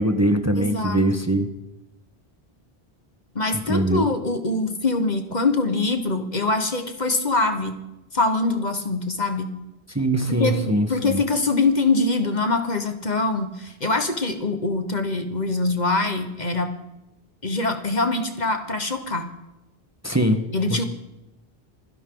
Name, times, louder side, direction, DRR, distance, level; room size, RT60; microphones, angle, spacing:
voice 1, 0.0-1.5 3.7-4.1 9.9-11.2 20.0-20.9, right 1 dB, 15° right, 6 dB, 1.3 m, -22 dB
voice 2, 0.5-1.0 3.3-7.7 8.1-9.5 10.3-16.7 17.4-19.3 20.5-20.9, left 3 dB, 45° left, 7 dB, 1.6 m, -24 dB
27.0 x 11.0 x 3.9 m, 0.94 s
omnidirectional pair, 1.0 m